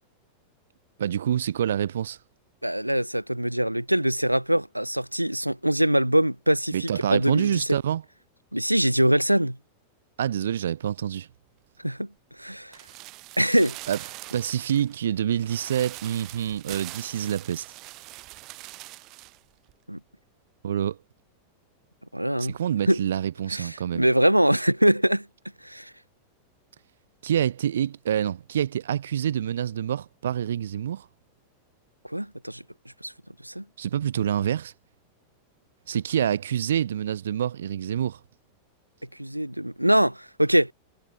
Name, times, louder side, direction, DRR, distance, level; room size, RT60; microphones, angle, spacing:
voice 1, 1.0-2.2 6.7-8.0 10.2-11.3 13.9-14.0 14.3-17.6 20.6-21.0 22.4-24.1 27.2-31.1 33.8-34.7 35.9-38.2, right 10 dB, 65° right, 1.2 m, -27 dB
voice 2, 2.6-7.8 8.5-9.6 11.8-12.1 12.4-12.8 13.4-13.8 19.9-20.0 22.1-22.6 22.9-23.0 23.5-25.3 25.6-25.9 32.1-32.6 33.0-33.1 33.4-33.6 39.2-40.7, right 1 dB, 90° right, 0.5 m, -23 dB
sound 1, 12.7-19.4 19.7-19.8, right 21 dB, 40° right, 2.3 m, -43 dB
figure-of-eight pair, 90°, 0 cm